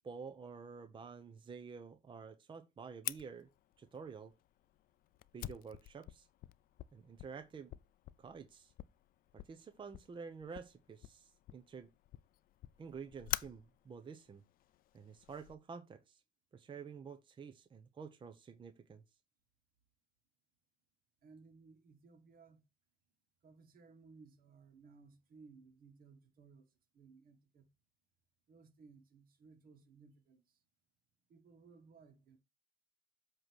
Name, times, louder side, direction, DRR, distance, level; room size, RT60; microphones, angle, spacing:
voice 1, 0.0-3.5 3.8-4.3 5.3-6.3 6.9-7.7 8.2-8.7 9.4-11.9 12.8-14.4 14.9-16.2 16.5-19.0, right 5 dB, 30° right, 0.7 m, -50 dB
Fire, 3.0-15.5, left 14 dB, 60° left, 0.4 m, -48 dB
voice 2, 21.2-22.6 23.4-27.7 28.5-30.6 31.3-32.4, right 4 dB, 60° right, 1.6 m, -61 dB
7.7 x 3.0 x 6.1 m
cardioid pair, 110°, 17 cm